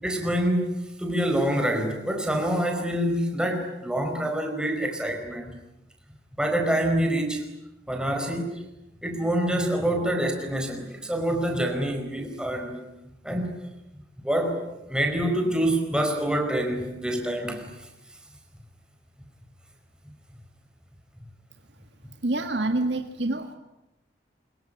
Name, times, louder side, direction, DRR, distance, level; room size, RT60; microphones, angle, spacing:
voice 1, 0.0-5.5 6.4-7.4 7.9-8.6 9.0-12.9 13.2-13.5 14.2-17.7, right 1 dB, 5° right, 3 dB, 4.7 m, -26 dB
voice 2, 22.2-23.5, right 2 dB, 85° right, 6 dB, 1.8 m, -27 dB
25.5 x 23.0 x 10.0 m, 0.91 s
head